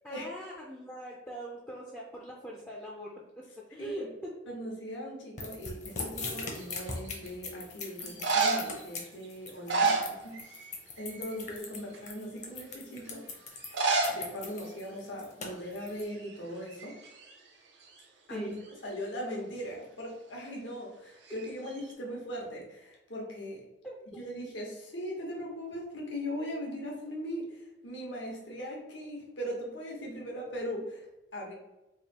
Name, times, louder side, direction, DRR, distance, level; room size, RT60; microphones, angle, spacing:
voice 1, 0.0-4.3 18.3-18.6 23.8-24.2, right 1 dB, 10° left, -3 dB, 0.4 m, -42 dB
voice 2, 4.5-10.7 11.0-13.5 14.1-17.0 18.3-18.5 18.8-23.6 24.2-31.0 31.3-31.5, equal, 80° left, -2 dB, 1.3 m, -39 dB
sound 1, 5.4-16.0, left 3 dB, 40° left, 0.8 m, -40 dB
sound 2, 6.6-7.1 8.0-8.8 9.5-10.7 11.0-11.3 11.9-12.0 13.6-14.2 14.5-14.6 14.8-14.9 15.6-15.8 16.1-17.3 21.3-21.9, right 4 dB, 70° right, 0.7 m, -30 dB
3.4 x 2.6 x 4.1 m, 0.98 s
head